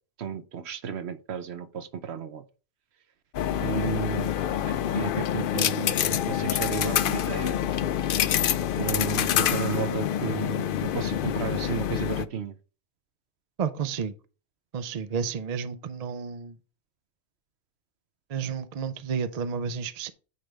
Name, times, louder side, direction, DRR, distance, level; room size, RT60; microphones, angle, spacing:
voice 1, 0.2-2.4 3.6-4.3 4.9-7.6 8.8-12.6, right 7 dB, 65° right, 0.9 m, -33 dB
sound 1, 3.3-12.2, left 10 dB, 60° left, 0.6 m, -26 dB
voice 2, 13.6-14.1 14.7-16.6 18.3-20.1, right 6 dB, 45° right, 0.6 m, -31 dB
9.5 x 3.4 x 5.1 m
omnidirectional pair, 1.2 m